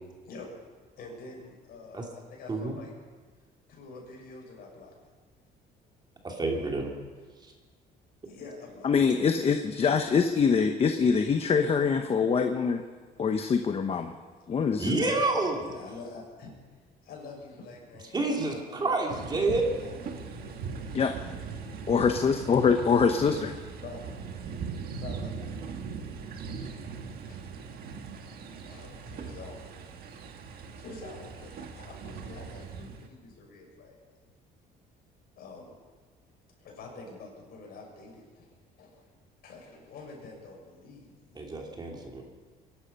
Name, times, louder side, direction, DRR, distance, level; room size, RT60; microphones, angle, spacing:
voice 1, 1.0-2.9 3.7-4.9 6.3-6.7 8.3-8.9 14.7-14.8 15.6-16.5 17.0-21.4 22.8-23.3 23.8-24.4 24.9-25.8 26.8-28.0 28.4-29.7 29.9-30.0 30.5-34.0 35.4-35.8 36.6-39.0 39.4-41.5, left 3 dB, 65° left, -1 dB, 6.4 m, -47 dB
voice 2, 6.2-6.9 14.8-15.7 18.1-19.6 41.3-42.2, right 2 dB, 25° right, 1 dB, 3.0 m, -28 dB
voice 3, 8.8-12.8 13.2-14.1 14.5-15.0 20.9-21.1 21.9-23.5, left 6 dB, 35° left, 6 dB, 1.0 m, -24 dB
sound 1, 19.1-33.1, right 5 dB, 65° right, 1.7 m, -40 dB
22.5 x 11.5 x 5.5 m, 1.4 s
cardioid pair, 110°, 17 cm